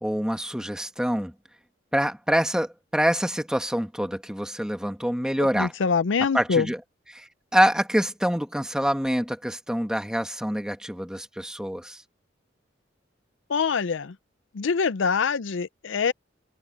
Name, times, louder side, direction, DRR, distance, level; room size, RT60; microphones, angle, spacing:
voice 1, 0.0-1.3 1.9-5.7 6.3-6.8 7.1-12.0, equal, 5° right, 1.5 m, -26 dB
voice 2, 5.6-6.7 13.5-14.2 14.5-16.1, left 5 dB, 85° left, 0.5 m, -24 dB
head